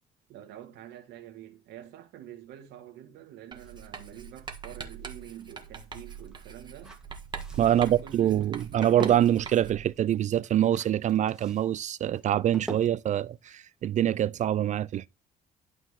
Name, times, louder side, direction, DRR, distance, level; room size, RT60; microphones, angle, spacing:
voice 1, 0.3-7.0 7.7-8.6, right 11 dB, 85° right, 1.8 m, -47 dB
sound 1, 3.5-14.4, right 1 dB, 5° right, 2.1 m, -47 dB
Writing, 3.5-9.9, right 6 dB, 25° right, 1.7 m, -42 dB
voice 2, 7.6-15.1, right 11 dB, 45° right, 0.4 m, -25 dB
11.5 x 4.9 x 3.6 m
cardioid pair, 110°, 17 cm